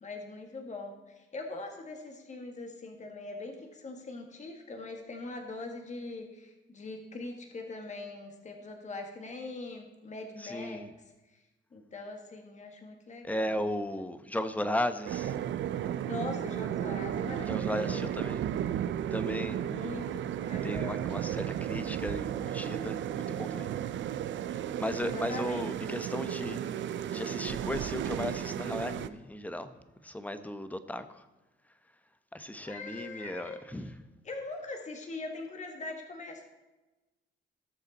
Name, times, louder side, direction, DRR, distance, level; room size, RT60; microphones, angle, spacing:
voice 1, 0.0-10.9 11.7-13.5 16.1-18.1 19.6-21.4 25.0-25.7 32.6-33.6 34.3-36.4, left 3 dB, 35° left, 3 dB, 1.8 m, -42 dB
voice 2, 10.4-10.9 13.2-15.3 17.5-18.4 19.1-19.6 20.6-23.7 24.8-26.6 27.1-29.7 30.0-31.2 32.3-34.0, left 1 dB, 5° left, 10 dB, 1.0 m, -36 dB
sound 1, 15.1-29.1, right 10 dB, 70° right, 0.6 m, -34 dB
18.0 x 6.7 x 4.2 m, 1.1 s
cardioid pair, 90°, 20 cm